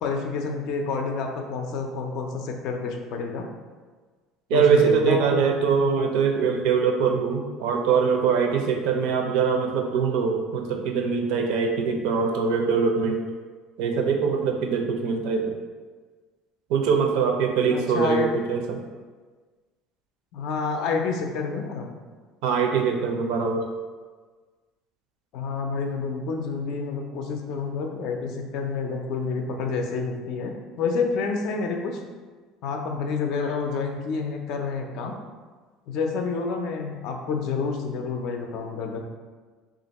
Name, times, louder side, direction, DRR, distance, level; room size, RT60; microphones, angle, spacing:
voice 1, 0.0-3.5 4.5-5.4 17.7-18.3 20.3-21.9 25.3-32.0 32.6-35.2 35.9-39.0, left 4 dB, 50° left, 3 dB, 0.4 m, -28 dB
voice 2, 4.5-13.2 13.8-15.5 16.7-18.8 22.4-23.7, right 6 dB, 65° right, 3 dB, 0.5 m, -23 dB
3.5 x 2.5 x 4.0 m, 1.4 s
cardioid pair, 180°, 0 cm